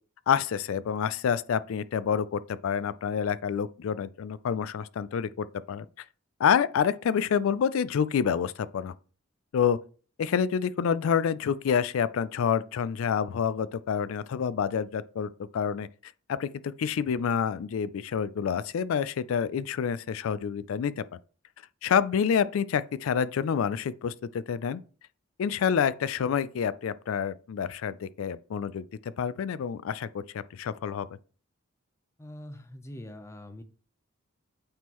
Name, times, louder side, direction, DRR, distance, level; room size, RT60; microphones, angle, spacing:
voice 1, 0.3-5.9 6.4-8.9 9.5-9.8 10.2-21.0 21.8-24.8 25.4-30.2 30.5-31.1, left 7 dB, 75° left, 0.3 m, -28 dB
voice 2, 32.2-33.6, left 1 dB, 15° left, 0.5 m, -43 dB
8.5 x 3.7 x 3.0 m
head